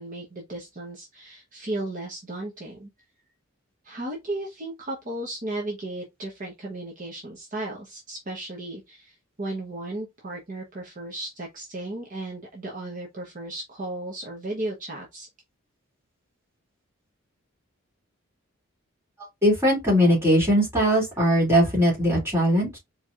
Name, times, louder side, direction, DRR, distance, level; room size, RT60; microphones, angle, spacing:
voice 1, 0.0-2.9 3.8-15.3, right 2 dB, 40° right, 1.0 m, -35 dB
voice 2, 19.4-22.8, equal, 10° right, 2.5 m, -20 dB
4.5 x 3.0 x 2.4 m
head